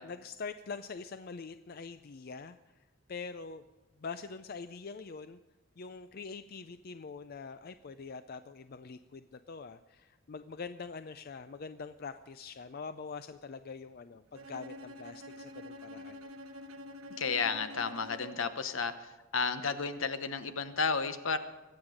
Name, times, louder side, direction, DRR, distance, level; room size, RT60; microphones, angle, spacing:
voice 1, 0.0-3.6 4.0-5.4 5.8-16.3, left 5 dB, 45° left, 11 dB, 0.4 m, -44 dB
Bowed string instrument, 14.3-18.6, left 1 dB, 85° right, 1.2 m, -47 dB
voice 2, 17.2-21.4, left 5 dB, 70° left, 10 dB, 1.0 m, -32 dB
24.0 x 8.9 x 5.1 m, 1.1 s
head